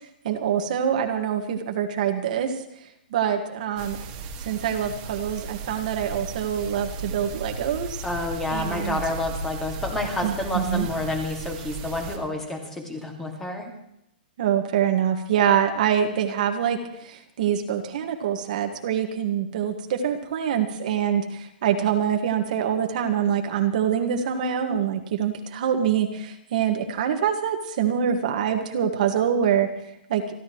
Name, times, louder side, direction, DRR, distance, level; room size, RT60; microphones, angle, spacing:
voice 1, 0.2-2.5 3.1-4.0 4.4-8.0 8.5-9.0 10.2-10.9 14.4-29.7 30.1-30.2, right 8 dB, 50° right, 4 dB, 1.8 m, -25 dB
sound 1, 3.8-12.2, right 3 dB, 30° right, 1.9 m, -36 dB
voice 2, 8.0-13.7, left 2 dB, 5° left, 2 dB, 2.1 m, -29 dB
29.0 x 12.5 x 3.1 m, 0.75 s
hypercardioid pair, 165°, 5 cm